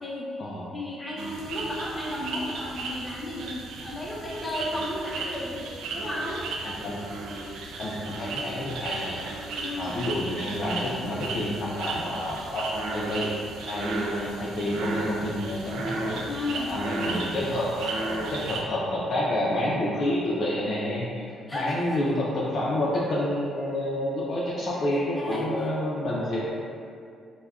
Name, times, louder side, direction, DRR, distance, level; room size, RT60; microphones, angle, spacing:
voice 1, 0.0-0.3 0.7-5.6 5.9-6.4 9.6-9.9 16.3-16.7 21.5-21.8 24.9-25.5, left 1 dB, 10° left, -6 dB, 0.6 m, -33 dB
sound 1, 1.2-18.6, right 3 dB, 85° right, 0.3 m, -34 dB
voice 2, 6.6-7.0 7.8-9.3 9.8-13.3 13.7-16.1 16.5-21.2 21.5-26.4, left 1 dB, 60° left, -6 dB, 0.4 m, -29 dB
3.4 x 2.1 x 2.3 m, 2.4 s
cardioid pair, 90°, 0 cm